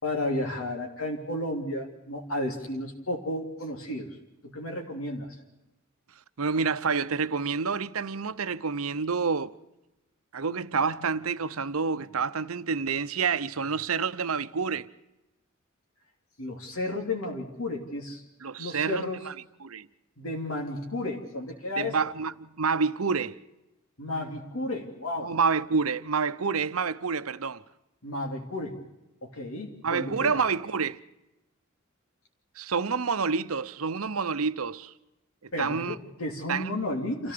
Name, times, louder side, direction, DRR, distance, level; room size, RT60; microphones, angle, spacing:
voice 1, 0.0-4.2 4.4-5.4 16.4-18.2 18.6-19.2 20.2-21.9 24.0-25.3 28.0-28.8 29.2-30.4 35.5-37.3, left 1 dB, 85° left, 3.0 m, -33 dB
voice 2, 6.4-9.5 10.3-14.9 18.4-19.3 19.6-19.9 21.8-23.4 25.2-27.6 29.8-31.0 32.6-34.9 35.6-36.0 36.5-36.7, right 5 dB, 90° right, 0.8 m, -28 dB
28.0 x 14.5 x 6.8 m
head